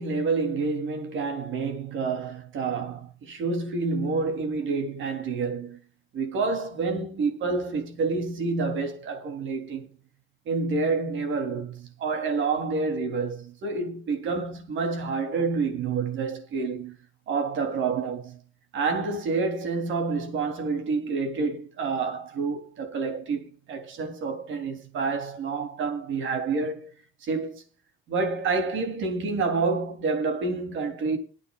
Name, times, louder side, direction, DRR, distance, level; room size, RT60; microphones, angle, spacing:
voice 1, 0.0-5.8 6.1-9.9 10.5-17.0 17.3-18.4 18.7-26.9 27.2-27.6 28.1-31.2, right 4 dB, 75° right, 3.5 m, -28 dB
27.0 x 9.0 x 2.5 m
cardioid pair, 90°, 20 cm